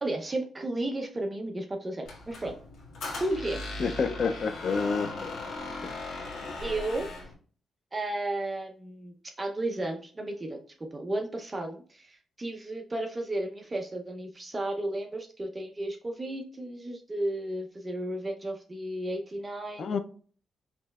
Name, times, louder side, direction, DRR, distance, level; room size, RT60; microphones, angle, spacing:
voice 1, 0.0-2.5 3.2-3.6 6.6-7.1 7.9-10.6 10.9-19.9, right 1 dB, 25° right, 2 dB, 0.7 m, -33 dB
Squeak, 2.0-7.3, left 2 dB, 85° left, 1.5 m, -38 dB
voice 2, 3.8-5.3 5.8-6.0 19.8-20.0, left 5 dB, 55° left, 9 dB, 0.5 m, -29 dB
5.1 x 3.2 x 2.3 m, 0.43 s
cardioid pair, 110°, 0 cm